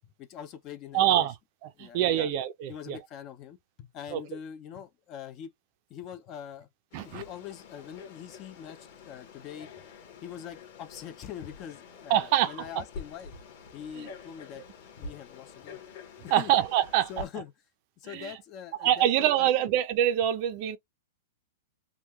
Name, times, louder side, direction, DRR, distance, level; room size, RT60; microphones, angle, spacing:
voice 1, 0.0-1.3 1.8-2.3 2.7-5.5 5.9-6.7 7.0-9.7 10.2-13.3 13.7-14.7 14.9-15.8 16.2-16.5 17.1-17.5 18.0-19.5, left 9 dB, 25° left, 0.4 m, -43 dB
voice 2, 0.9-1.3 1.6-3.0 4.1-4.2 6.9-7.2 12.1-12.7 14.0-14.1 16.3-17.1 18.1-18.3 18.8-20.8, right 11 dB, 35° right, 0.5 m, -25 dB
Frog, 6.9-17.3, left 4 dB, 40° left, 1.1 m, -47 dB
3.6 x 2.3 x 2.9 m
supercardioid pair, 175°, 0 cm